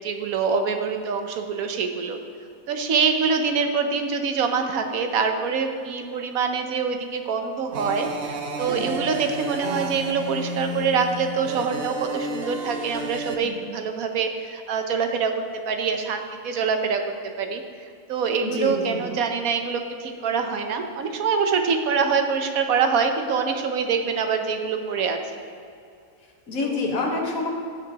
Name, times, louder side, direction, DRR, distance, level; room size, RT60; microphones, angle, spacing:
voice 1, 0.0-2.2 2.7-15.3 15.6-17.6 18.1-25.4 26.6-26.8, right 5 dB, 75° right, 5 dB, 1.2 m, -25 dB
sound 1, 7.7-13.4, right 1 dB, 50° right, 0.8 m, -31 dB
voice 2, 8.7-9.1 13.2-13.6 18.4-19.1 26.5-27.5, left 3 dB, 70° left, -1 dB, 1.7 m, -28 dB
16.0 x 6.4 x 2.9 m, 2.4 s
omnidirectional pair, 1.5 m